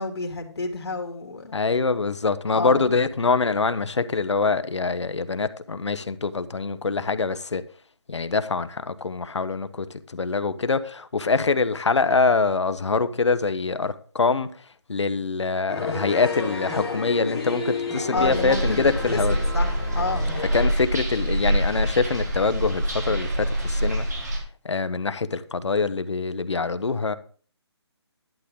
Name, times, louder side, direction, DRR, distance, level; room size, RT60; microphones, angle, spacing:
voice 1, 0.0-1.6 2.5-2.8 18.1-18.8 19.1-20.3, left 3 dB, 65° left, 2.7 m, -30 dB
voice 2, 1.5-7.6 8.1-14.5 14.9-19.4 20.5-24.1 24.6-27.2, left 4 dB, 85° left, 1.1 m, -24 dB
sound 1, 15.7-20.7, left 3 dB, ahead, 1.5 m, -31 dB
sound 2, 18.1-24.4, equal, 40° right, 3.0 m, -25 dB
11.5 x 8.5 x 3.8 m
hypercardioid pair, 175°, 14 cm